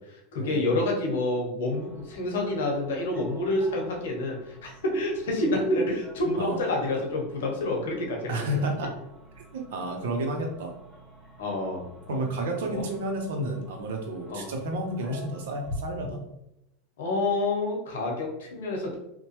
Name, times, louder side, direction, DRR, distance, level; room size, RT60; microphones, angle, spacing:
voice 1, 0.1-8.6 11.4-12.2 14.3-14.5 17.0-18.9, left 2 dB, 80° left, 1 dB, 0.8 m, -28 dB
sound 1, 1.7-15.8, equal, ahead, 1.2 m, -47 dB
voice 2, 8.3-9.0 9.4-10.7 12.1-16.2, right 1 dB, 75° right, 3 dB, 0.6 m, -31 dB
2.8 x 2.1 x 3.0 m, 0.85 s
hypercardioid pair, 105°, 0 cm